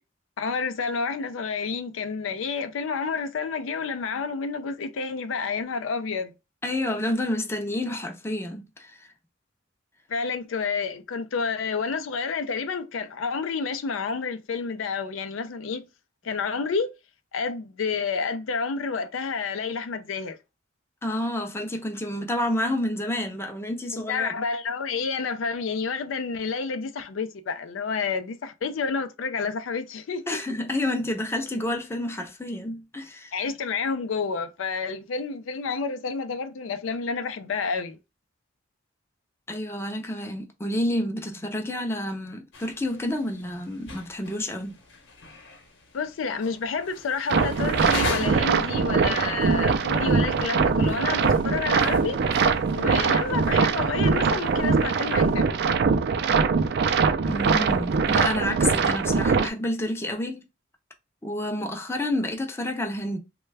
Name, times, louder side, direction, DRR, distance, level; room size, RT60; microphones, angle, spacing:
voice 1, 0.4-6.3 10.1-15.9 16.2-16.9 17.3-20.4 23.9-30.4 33.3-38.0 45.9-52.2 52.7-55.6, left 5 dB, 80° left, 0.4 m, -29 dB
voice 2, 6.6-9.1 21.0-24.3 30.3-33.3 39.5-44.8 57.3-60.4 61.2-63.2, left 1 dB, 15° left, 0.5 m, -29 dB
sound 1, 42.5-55.4, left 2 dB, 60° left, 0.9 m, -40 dB
sound 2, 47.3-59.5, right 5 dB, 55° right, 0.4 m, -22 dB
3.2 x 2.2 x 3.2 m
head